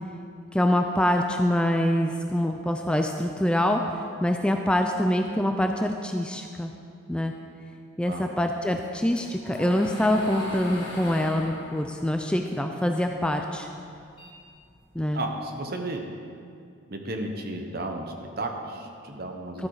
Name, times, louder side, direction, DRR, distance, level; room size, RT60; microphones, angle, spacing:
voice 1, 0.5-3.8 4.2-6.7 7.1-7.3 8.0-13.7 15.0-15.2 19.6-19.7, left 1 dB, 5° left, 4 dB, 0.4 m, -25 dB
sound 1, 8.7-13.2 13.6-15.2, left 1 dB, 25° left, 2.6 m, -39 dB
voice 2, 15.1-16.0 16.9-19.7, right 2 dB, 50° right, 4 dB, 1.1 m, -33 dB
13.0 x 8.6 x 4.8 m, 2.3 s
head